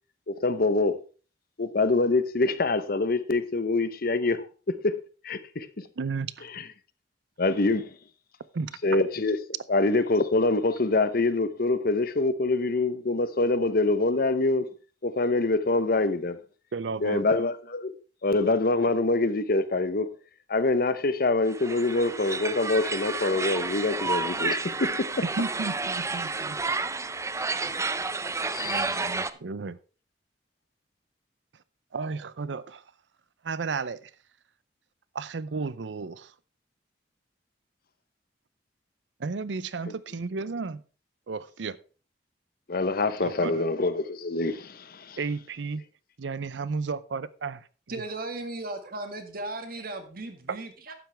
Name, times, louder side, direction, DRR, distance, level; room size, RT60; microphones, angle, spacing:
voice 1, 0.3-1.0 1.6-5.0 5.2-5.8 7.4-7.9 8.8-9.4 9.7-14.7 15.0-16.4 17.0-18.0 18.2-20.1 20.5-25.1 28.5-29.0 42.7-45.2, left 2 dB, 55° left, 0.9 m, -25 dB
voice 2, 6.0-6.5 8.5-8.8 16.7-17.2 25.3-26.6 27.6-27.7 28.6-29.8 31.9-32.8 33.4-34.1 35.1-36.3 39.2-40.8 41.3-41.8 43.2-43.6 45.2-45.8 46.2-47.7 50.5-50.6, right 4 dB, 80° right, 0.6 m, -33 dB
sound 1, 21.5-29.3, right 3 dB, 15° right, 0.5 m, -30 dB
voice 3, 47.9-50.9, right 2 dB, 55° right, 1.9 m, -36 dB
12.0 x 9.1 x 3.4 m
head